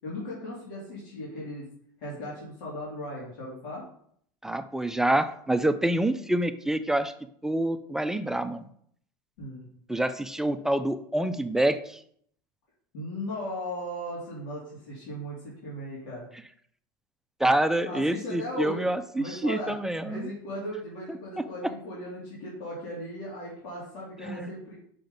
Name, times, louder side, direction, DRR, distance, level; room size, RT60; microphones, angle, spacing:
voice 1, 0.0-1.7 2.0-3.8 9.4-9.7 12.9-16.3 17.8-18.8 19.2-19.7 20.0-24.8, left 1 dB, 80° left, -7 dB, 2.7 m, -37 dB
voice 2, 4.4-7.1 7.4-8.6 9.9-12.0 17.4-20.2 24.2-24.5, right 1 dB, 5° right, 10 dB, 0.5 m, -27 dB
5.9 x 3.9 x 5.2 m, 0.65 s
supercardioid pair, 105°, 11 cm